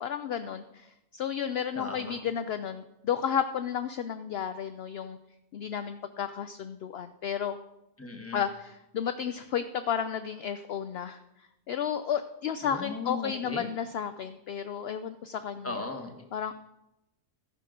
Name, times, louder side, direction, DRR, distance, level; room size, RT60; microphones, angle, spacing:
voice 1, 0.0-5.2 5.5-7.6 8.3-15.8 16.3-16.5, left 8 dB, 60° left, 10 dB, 0.7 m, -32 dB
voice 2, 1.7-2.2 8.0-8.5 12.6-13.7 15.6-16.2, left 3 dB, 10° left, 4 dB, 1.2 m, -37 dB
15.0 x 5.7 x 5.1 m, 0.90 s
omnidirectional pair, 1.3 m